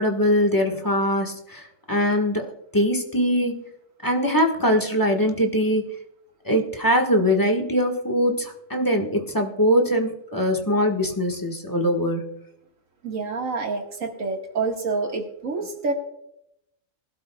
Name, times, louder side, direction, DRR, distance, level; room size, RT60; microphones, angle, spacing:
voice 1, 0.0-1.6 1.9-3.6 4.0-5.8 6.4-12.4, equal, 15° left, 1 dB, 1.5 m, -22 dB
voice 2, 13.0-15.9, right 4 dB, 80° right, 2 dB, 2.1 m, -27 dB
20.0 x 12.0 x 2.3 m, 0.80 s
omnidirectional pair, 1.4 m